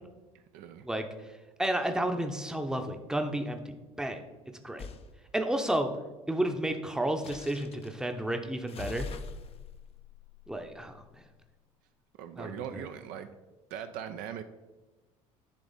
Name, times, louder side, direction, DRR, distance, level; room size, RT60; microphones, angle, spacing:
voice 1, 0.3-0.9 12.2-13.3 13.7-14.4, right 9 dB, 55° right, 8 dB, 0.5 m, -40 dB
voice 2, 1.6-3.6 4.0-4.2 4.6-4.9 5.3-5.9 6.3-9.1 10.5-10.9 12.4-12.8, right 1 dB, 5° right, 6 dB, 0.7 m, -31 dB
sound 1, 4.8-5.1 7.2-8.0 8.7-11.3, left 5 dB, 35° left, 0.5 m, -43 dB
10.0 x 3.4 x 4.0 m, 1.2 s
hypercardioid pair, 65°, 17 cm